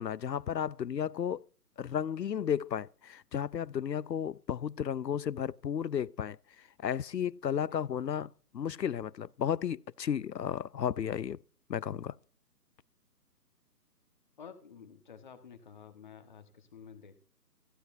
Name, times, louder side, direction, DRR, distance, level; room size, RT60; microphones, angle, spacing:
voice 1, 0.0-1.4 1.8-6.4 6.8-8.3 8.5-11.4 11.7-12.1, left 8 dB, 90° left, 0.6 m, -33 dB
voice 2, 14.4-17.2, left 7 dB, 30° left, 1.4 m, -51 dB
17.5 x 15.0 x 2.6 m
figure-of-eight pair, 155°, 48 cm